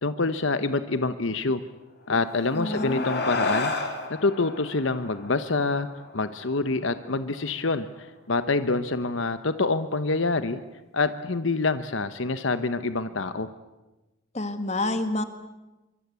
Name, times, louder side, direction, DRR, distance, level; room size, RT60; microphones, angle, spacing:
voice 1, 0.0-1.6 2.1-3.7 4.1-5.9 6.1-10.6 10.9-13.5, left 3 dB, 70° left, 11 dB, 1.0 m, -26 dB
sound 1, 2.1-6.9, left 3 dB, 50° left, 3.7 m, -32 dB
voice 2, 2.5-3.1 14.3-15.2, left 2 dB, 30° left, 9 dB, 1.9 m, -28 dB
24.5 x 24.0 x 8.3 m, 1.1 s
head